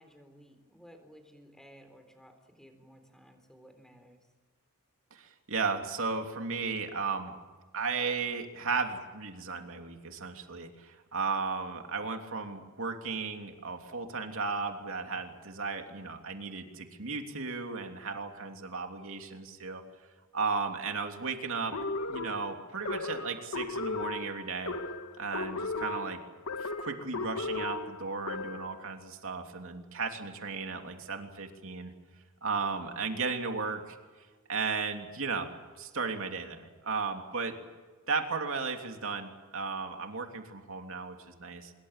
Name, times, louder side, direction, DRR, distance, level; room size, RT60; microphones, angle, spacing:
voice 1, 0.0-4.3, equal, ahead, 7 dB, 3.8 m, -56 dB
voice 2, 5.1-7.3 7.7-19.8 20.3-21.7 22.1-24.7 25.2-26.2 26.6-31.9 32.4-34.0 34.5-35.5 35.8-37.5 38.1-41.7, right 4 dB, 65° right, 4 dB, 3.1 m, -35 dB
sound 1, 21.7-28.8, left 3 dB, 80° left, 2.0 m, -36 dB
25.5 x 22.5 x 7.5 m, 1.4 s
head